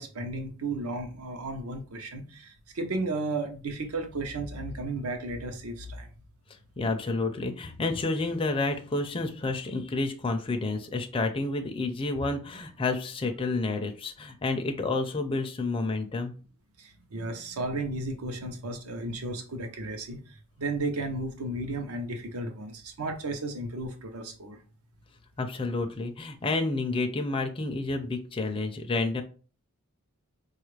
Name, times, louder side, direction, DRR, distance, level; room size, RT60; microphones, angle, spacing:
voice 1, 0.0-6.1 16.8-20.2 20.6-24.6, right 2 dB, 75° right, 0.7 m, -34 dB
voice 2, 6.8-16.3 25.4-29.2, left 3 dB, 25° left, 0.4 m, -30 dB
4.8 x 2.4 x 3.1 m
head